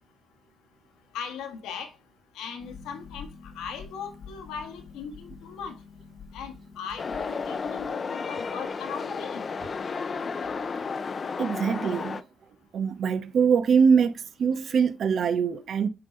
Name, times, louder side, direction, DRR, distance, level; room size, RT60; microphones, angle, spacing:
voice 1, 1.1-1.9 2.3-3.3 3.5-5.7 6.3-9.4, left 6 dB, 90° left, 1.4 m, -38 dB
Harp, 2.6-7.9, left 5 dB, 70° left, 1.3 m, -47 dB
sound 1, 7.0-12.2, left 5 dB, 40° left, 0.6 m, -32 dB
voice 2, 11.4-12.2 12.7-14.1 14.4-15.9, right 6 dB, 60° right, 0.9 m, -23 dB
7.2 x 3.9 x 5.1 m
cardioid pair, 90°, 0 cm